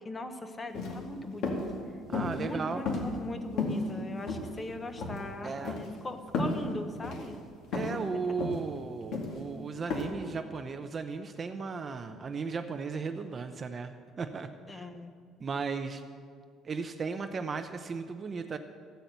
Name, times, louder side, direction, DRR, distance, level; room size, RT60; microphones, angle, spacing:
voice 1, 0.0-1.6 2.4-7.4 14.7-15.1, left 2 dB, 15° left, 7 dB, 0.9 m, -40 dB
sound 1, 0.7-1.0 1.4-1.6 2.1-2.4 2.9-3.3 3.6-3.8 4.3-4.7 5.0-5.2 5.6-5.9 6.3-6.6 7.0-7.2 7.7-8.0 8.4-8.6 9.1-9.4 9.9-10.0, left 4 dB, 60° left, 2.4 m, -32 dB
voice 2, 2.1-2.9 5.4-5.8 7.7-14.9 15.4-16.0 16.6-18.6, right 5 dB, 25° right, 8 dB, 0.6 m, -36 dB
14.0 x 8.5 x 8.0 m, 2.1 s
cardioid pair, 165°, 0 cm